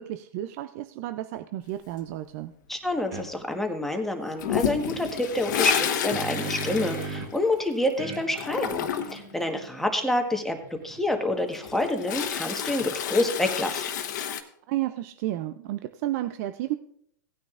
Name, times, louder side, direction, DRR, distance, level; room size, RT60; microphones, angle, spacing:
voice 1, 0.0-2.5 14.7-16.8, right 14 dB, 50° right, 11 dB, 0.5 m, -32 dB
voice 2, 2.7-10.6 10.8-13.8, left 1 dB, 5° left, 4 dB, 1.3 m, -27 dB
sound 1, 3.1-3.3 5.7-7.5 8.0-11.3, right 4 dB, 65° right, 2.5 m, -39 dB
Toilet flush, 4.4-7.9 8.1-9.3 11.4-14.4, left 9 dB, 65° left, 1.2 m, -30 dB
17.5 x 9.3 x 2.5 m, 0.71 s
hypercardioid pair, 125°, 11 cm